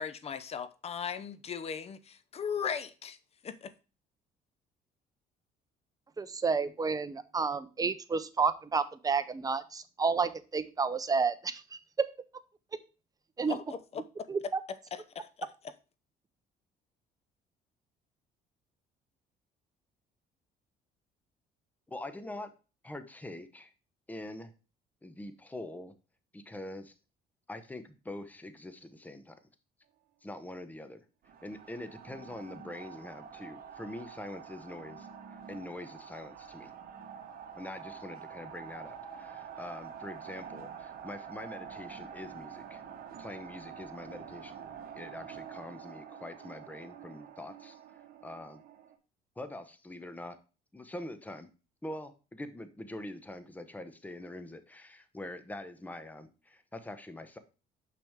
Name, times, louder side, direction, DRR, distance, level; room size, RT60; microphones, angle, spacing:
voice 1, 0.0-3.2 3.4-3.7 13.5-14.0 14.9-15.7, left 7 dB, 35° left, 0.7 m, -38 dB
voice 2, 6.2-11.8 13.4-13.6 14.3-14.6, right 5 dB, 20° right, 0.7 m, -30 dB
voice 3, 21.9-22.5 22.8-23.7 24.1-24.5 25.0-25.9 26.3-26.9 27.5-29.4 30.2-31.0 31.4-35.1 35.5-36.7 37.5-42.8 43.2-44.6 44.9-47.8 48.2-48.6 49.4-50.4 50.7-51.5 51.8-57.4, left 1 dB, 10° left, 0.9 m, -44 dB
sound 1, 31.2-49.0, right 7 dB, 60° right, 1.2 m, -47 dB
6.0 x 6.0 x 3.6 m
cardioid pair, 110°, 17 cm